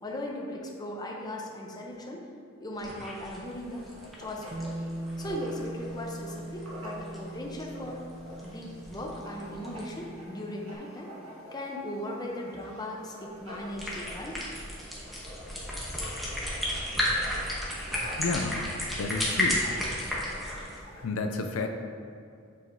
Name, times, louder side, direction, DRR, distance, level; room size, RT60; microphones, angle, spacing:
voice 1, 0.0-2.3 2.6-3.8 4.2-4.8 5.2-8.1 8.4-11.1 11.5-14.4, left 1 dB, 20° left, 0 dB, 0.6 m, -38 dB
sound 1, 2.7-10.1 13.5-20.8, left 1 dB, ahead, 1.0 m, -34 dB
Writing, 3.4-21.0, equal, 85° right, 1.2 m, -48 dB
Bass guitar, 4.5-10.8, right 1 dB, 50° right, 0.6 m, -41 dB
voice 2, 18.2-18.7 19.0-19.7 20.9-21.7, left 3 dB, 80° left, 5 dB, 0.4 m, -31 dB
8.4 x 4.6 x 2.6 m, 2.3 s
head